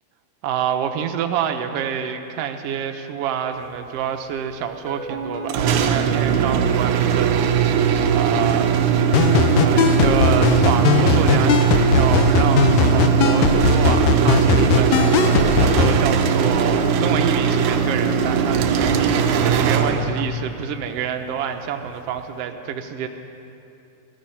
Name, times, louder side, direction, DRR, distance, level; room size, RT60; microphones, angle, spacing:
voice 1, 0.4-8.7 9.6-23.1, right 8 dB, 90° right, 6 dB, 1.3 m, -27 dB
sound 1, 4.6-7.8, right 2 dB, 55° right, 1.9 m, -36 dB
sound 2, 5.5-20.4, right 6 dB, 75° right, 2.1 m, -19 dB
sound 3, 9.1-16.0, left 6 dB, 75° left, 1.6 m, -19 dB
16.5 x 14.0 x 5.6 m, 2.7 s
omnidirectional pair, 3.7 m